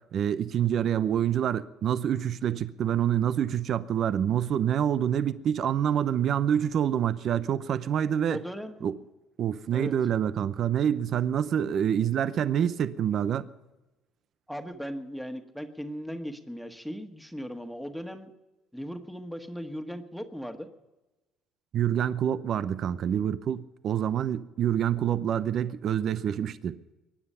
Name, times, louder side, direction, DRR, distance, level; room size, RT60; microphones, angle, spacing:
voice 1, 0.1-8.4 8.8-9.0 9.4-13.5 21.7-26.8, right 9 dB, 55° right, 0.7 m, -27 dB
voice 2, 8.3-8.7 9.7-9.9 14.5-18.3 18.7-20.7, equal, ahead, 1.6 m, -37 dB
23.0 x 9.7 x 5.6 m
supercardioid pair, 95°, 0 cm